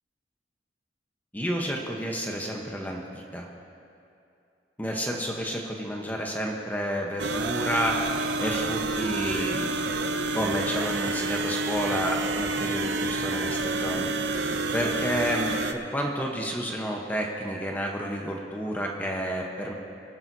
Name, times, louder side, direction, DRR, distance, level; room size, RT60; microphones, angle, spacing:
voice 1, 1.3-3.5 4.8-9.7 10.3-19.7, equal, 10° left, 0 dB, 1.0 m, -30 dB
sound 1, 7.2-15.7, right 2 dB, 70° right, 0.7 m, -28 dB
23.0 x 12.0 x 2.8 m, 2.6 s
head